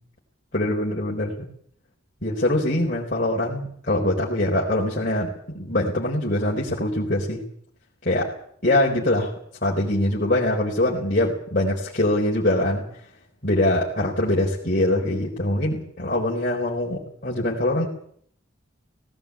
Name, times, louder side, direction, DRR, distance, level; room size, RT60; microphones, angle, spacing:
voice 1, 0.5-1.5 2.2-7.4 8.0-8.3 8.6-9.3 9.6-12.9 13.4-17.9, left 1 dB, 45° left, -4 dB, 4.1 m, -23 dB
18.5 x 18.0 x 8.5 m, 0.63 s
head